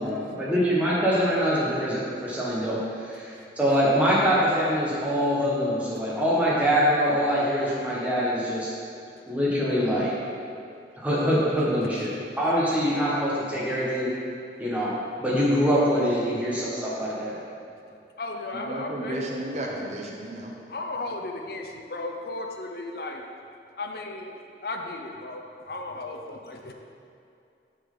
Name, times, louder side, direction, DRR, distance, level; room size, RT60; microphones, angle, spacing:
voice 1, 0.0-8.7 9.3-10.1 11.0-14.2 14.6-14.9 15.2-17.3, equal, 10° right, -7 dB, 1.2 m, -24 dB
voice 2, 11.8-12.2 18.2-19.2 20.7-23.2 23.8-26.7, left 2 dB, 60° left, 2 dB, 0.6 m, -35 dB
voice 3, 18.5-20.5, right 1 dB, 40° right, -1 dB, 0.7 m, -33 dB
6.2 x 6.1 x 3.8 m, 2.6 s
head